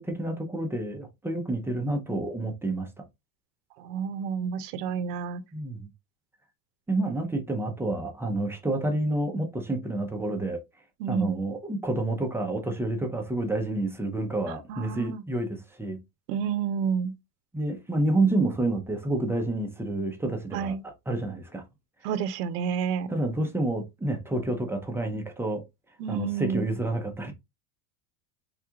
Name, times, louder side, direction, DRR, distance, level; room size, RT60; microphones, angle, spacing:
voice 1, 0.0-3.0 5.5-5.9 6.9-10.6 11.1-16.0 17.5-21.6 23.1-25.6 26.1-27.3, right 2 dB, 5° right, 0.6 m, -29 dB
voice 2, 3.8-5.4 11.0-11.4 14.7-15.2 16.3-17.1 20.5-20.8 22.0-23.1 26.0-26.6, right 7 dB, 75° right, 0.7 m, -29 dB
3.6 x 2.3 x 2.8 m
supercardioid pair, 115°, 48 cm